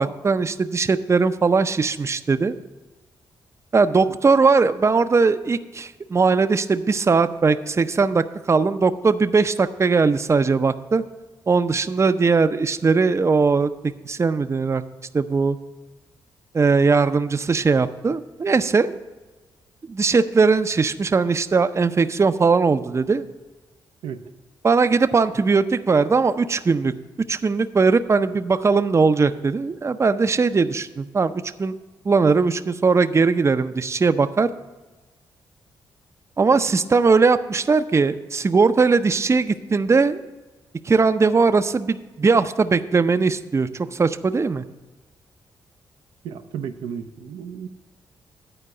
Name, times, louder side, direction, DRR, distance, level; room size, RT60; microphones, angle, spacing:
voice 1, 0.0-2.5 3.7-11.0 11.5-14.8 15.1-15.6 16.5-18.9 19.9-23.2 24.6-26.9 27.3-31.3 31.6-31.7 32.0-34.5 36.4-40.2 40.8-44.6, right 4 dB, 30° right, 11 dB, 0.5 m, -19 dB
voice 2, 46.2-47.7, right 7 dB, 85° right, 7 dB, 0.5 m, -33 dB
9.9 x 4.6 x 7.9 m, 1.2 s
supercardioid pair, 55°, 9 cm